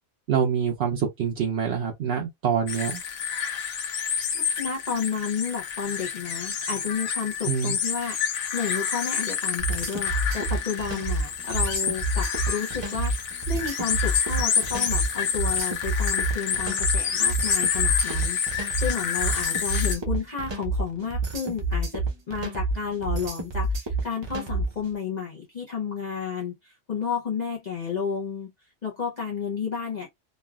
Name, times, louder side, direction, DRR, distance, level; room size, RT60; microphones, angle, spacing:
voice 1, 0.3-3.0 7.5-7.7, right 7 dB, 65° right, 0.9 m, -25 dB
sound 1, 2.7-20.0, left 7 dB, 75° left, 1.1 m, -28 dB
voice 2, 4.3-28.5 28.8-30.1, left 6 dB, 45° left, 0.7 m, -32 dB
sound 2, 9.6-24.8, right 2 dB, 35° right, 0.5 m, -28 dB
3.2 x 2.3 x 2.3 m
omnidirectional pair, 1.3 m